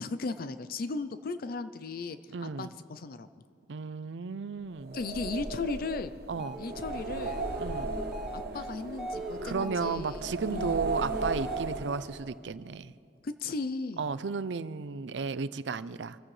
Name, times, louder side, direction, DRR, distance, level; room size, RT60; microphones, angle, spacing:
voice 1, 0.0-3.3 4.9-6.1 6.6-7.4 8.3-10.8 13.2-14.1, left 3 dB, 55° left, 11 dB, 0.5 m, -36 dB
voice 2, 2.3-2.7 3.7-5.0 6.3-6.6 7.6-7.9 9.4-12.9 14.0-16.2, right 5 dB, 80° right, 15 dB, 0.5 m, -34 dB
sound 1, 4.8-12.4, right 3 dB, 60° right, 1.1 m, -36 dB
sound 2, 6.3-12.0, equal, ahead, 1.2 m, -41 dB
26.0 x 15.0 x 3.3 m, 2.4 s
head